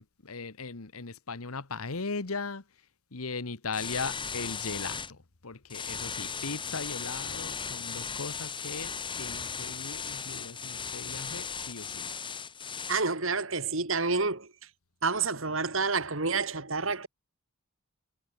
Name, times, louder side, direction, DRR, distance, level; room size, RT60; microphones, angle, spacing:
voice 1, 0.0-2.6 3.1-12.1, left 4 dB, 90° left, 1.4 m, -38 dB
sound 1, 3.7-5.1 5.7-13.0, left 6 dB, 25° left, 5.4 m, -37 dB
voice 2, 12.9-14.5 15.0-17.1, right 4 dB, 70° right, 2.8 m, -29 dB
head